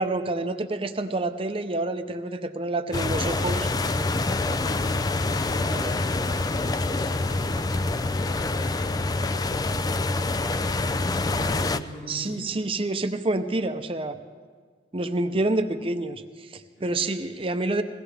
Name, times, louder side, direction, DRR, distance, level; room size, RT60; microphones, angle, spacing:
voice 1, 0.0-3.7 12.1-14.2 14.9-17.8, right 2 dB, 30° right, 8 dB, 0.7 m, -28 dB
sound 1, 2.9-11.8, left 2 dB, 20° left, 0.3 m, -26 dB
sound 2, 3.6-8.9, left 2 dB, 70° left, 4.5 m, -51 dB
voice 2, 4.4-9.0 10.8-12.5 16.8-17.1, equal, 85° left, -8 dB, 5.1 m, -43 dB
21.5 x 17.0 x 3.4 m, 1.5 s
head